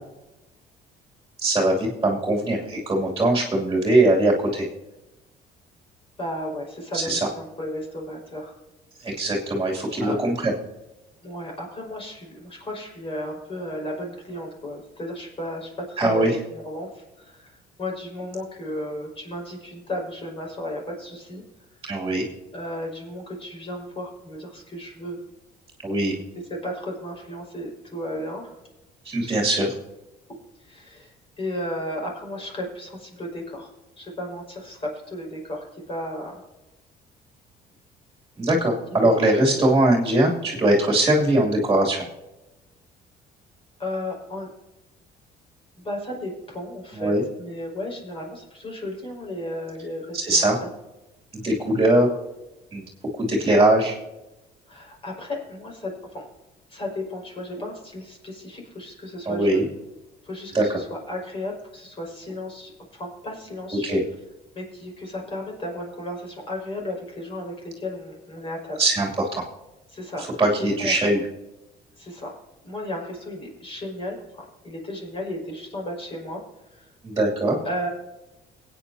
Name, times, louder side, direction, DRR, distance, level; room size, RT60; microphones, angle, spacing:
voice 1, 1.4-4.7 6.9-7.2 9.0-10.5 16.0-16.4 21.9-22.3 25.8-26.1 29.0-29.7 38.4-42.0 46.9-47.2 50.1-50.6 51.3-52.1 52.7-52.8 53.1-54.0 59.3-59.6 60.5-60.8 63.7-64.0 68.8-69.4 70.2-71.2 77.0-77.6, right 1 dB, 20° right, -2 dB, 2.7 m, -21 dB
voice 2, 6.2-8.6 10.0-10.2 11.2-21.4 22.5-25.2 26.5-28.6 30.6-33.7 34.0-36.4 39.0-39.6 43.8-44.5 45.8-50.7 54.7-56.3 56.7-59.7 60.2-64.0 64.6-68.8 69.9-70.2 70.5-71.0 72.0-72.4 72.6-76.4 76.7-76.9 77.6-77.9, left 1 dB, 35° left, -1 dB, 5.4 m, -34 dB
23.5 x 9.2 x 2.8 m, 1.0 s
cardioid pair, 110°, 17 cm